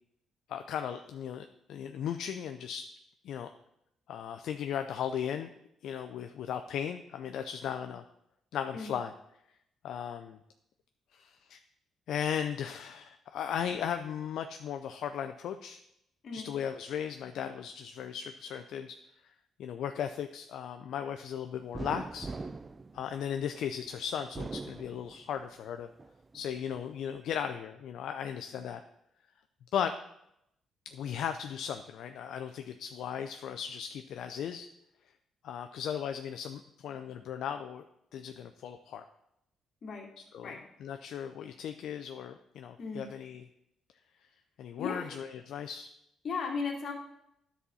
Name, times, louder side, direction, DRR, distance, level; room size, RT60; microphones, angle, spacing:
voice 1, 0.5-2.9 3.2-3.5 4.1-5.5 5.8-8.0 8.5-9.1 9.8-10.4 11.1-11.6 12.1-15.8 16.3-19.0 19.2-19.3 19.6-22.3 22.9-25.9 26.3-28.8 29.7-29.9 30.9-34.7 35.4-37.8 38.1-39.0 40.2-40.5 40.8-43.4 44.6-45.9, left 8 dB, 75° left, 7 dB, 0.5 m, -36 dB
sound 1, 21.7-23.7 24.2-25.5 26.0-26.9, right 3 dB, 25° right, 0.3 m, -42 dB
voice 2, 44.8-45.2 46.2-46.9, left 5 dB, 55° left, 0 dB, 2.3 m, -36 dB
10.0 x 4.2 x 6.9 m, 0.80 s
cardioid pair, 90°, 0 cm